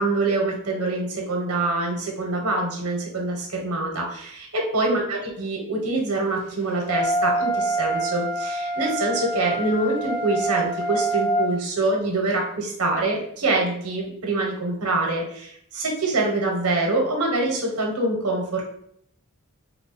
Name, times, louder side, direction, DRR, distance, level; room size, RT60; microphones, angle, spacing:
voice 1, 0.0-18.6, right 2 dB, 70° right, 0 dB, 1.1 m, -25 dB
Wind instrument woodwind instrument, 6.9-11.5, right 1 dB, 75° left, 1.1 m, -26 dB
3.1 x 2.3 x 4.1 m, 0.67 s
head